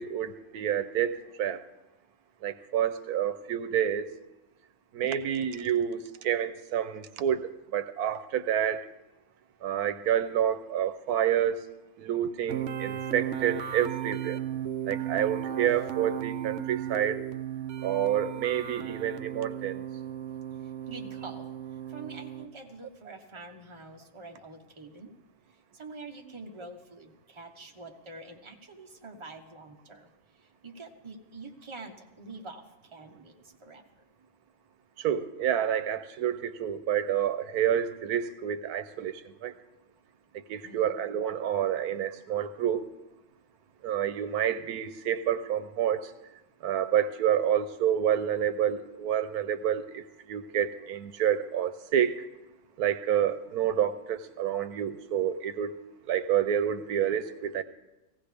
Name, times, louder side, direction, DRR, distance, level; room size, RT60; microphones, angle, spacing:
voice 1, 0.0-1.6 2.4-4.1 4.9-8.8 9.6-11.6 12.0-14.4 14.9-17.2 17.8-19.8 35.0-39.5 40.5-42.9 43.8-46.1 46.6-50.0 50.3-52.2 52.8-55.7 56.1-57.6, right 9 dB, 85° right, 12 dB, 1.2 m, -28 dB
sound 1, 12.5-22.5, right 10 dB, 65° right, 0.9 m, -35 dB
voice 2, 20.9-21.5 21.9-25.1 25.7-30.1 30.6-33.8 40.6-41.0, right 3 dB, 20° right, 2 dB, 1.1 m, -46 dB
19.0 x 15.5 x 3.4 m, 1.0 s
omnidirectional pair, 1.6 m